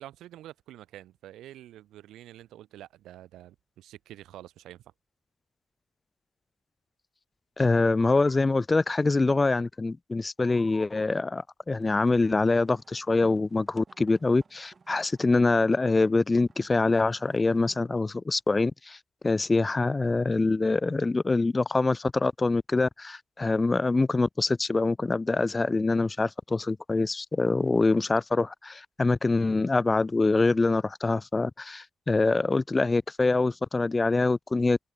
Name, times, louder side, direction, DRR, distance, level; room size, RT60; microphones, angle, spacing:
voice 1, 0.0-4.8, right 13 dB, 85° right, 2.9 m, -47 dB
voice 2, 7.6-19.0 19.2-34.8, left 3 dB, 20° left, 0.4 m, -25 dB
sound 1, 11.7-18.2, right 4 dB, 35° right, 7.9 m, -57 dB
cardioid pair, 90°, 0 cm